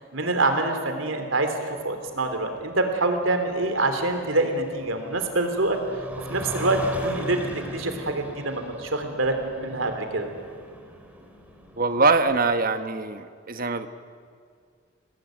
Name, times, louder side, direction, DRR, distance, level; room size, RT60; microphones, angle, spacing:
voice 1, 0.1-5.8 6.3-7.4 7.7-10.3, right 2 dB, 75° right, 6 dB, 3.3 m, -25 dB
sound 1, 1.8-12.4, equal, 10° right, 3.1 m, -40 dB
voice 2, 11.8-13.9, right 3 dB, 45° right, 8 dB, 1.3 m, -23 dB
27.0 x 19.5 x 9.3 m, 2.1 s
head